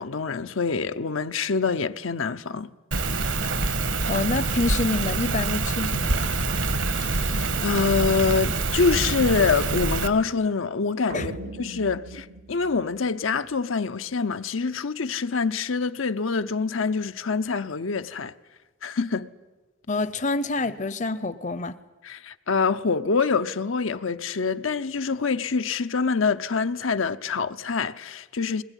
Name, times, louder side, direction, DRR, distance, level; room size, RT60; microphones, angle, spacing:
voice 1, 0.0-2.7 6.9-11.3 11.6-18.3 18.8-19.3 22.0-28.6, left 4 dB, 85° left, 0.8 m, -25 dB
Rain, 2.9-10.1, right 3 dB, 70° right, 1.6 m, -25 dB
voice 2, 4.0-6.3 11.1-11.4 19.9-21.8, left 3 dB, 40° left, 0.7 m, -27 dB
sound 1, 11.1-13.6, right 2 dB, 55° right, 0.9 m, -39 dB
21.0 x 20.0 x 10.0 m
head